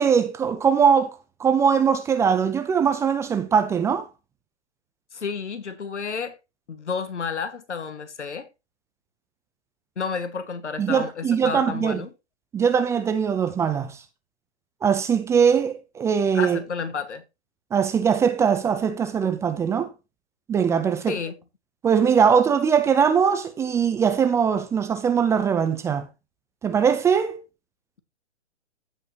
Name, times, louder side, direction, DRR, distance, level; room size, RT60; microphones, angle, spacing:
voice 1, 0.0-4.1 10.8-12.0 12.5-14.0 14.8-16.6 17.7-19.9 20.5-21.2 21.8-26.1 26.6-27.4, right 7 dB, 10° right, 0.6 m, -21 dB
voice 2, 5.1-6.3 6.7-8.5 10.0-12.1 16.3-17.2 21.1-21.3, left 5 dB, 85° left, 1.8 m, -31 dB
15.5 x 5.4 x 2.9 m
hypercardioid pair, 140°, 34 cm